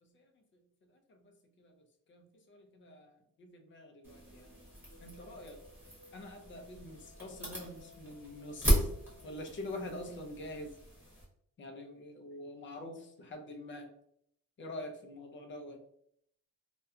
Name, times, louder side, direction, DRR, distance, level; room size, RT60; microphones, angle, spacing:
voice 1, 0.0-4.6 5.0-5.6 6.1-9.0 9.2-10.8 11.6-13.9 14.6-15.8, left 1 dB, 35° left, 4 dB, 0.4 m, -46 dB
sound 1, 4.0-11.2, equal, 5° right, 1.0 m, -36 dB
2.6 x 2.2 x 2.3 m, 0.71 s
wide cardioid pair, 165°, 35 cm